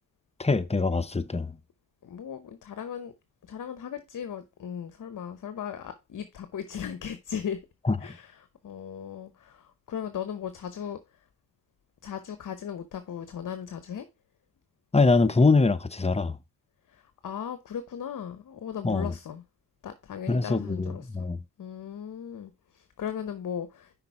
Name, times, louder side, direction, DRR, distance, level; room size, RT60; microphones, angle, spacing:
voice 1, 0.4-1.5 7.8-8.1 14.9-16.4 18.8-19.1 20.3-21.4, left 3 dB, 15° left, 0.7 m, -23 dB
voice 2, 2.0-3.1 3.5-7.6 8.0-11.0 12.0-14.1 16.9-19.4 19.8-21.1 21.6-23.9, left 8 dB, 50° left, 0.9 m, -37 dB
5.9 x 4.2 x 5.4 m
supercardioid pair, 45°, 41 cm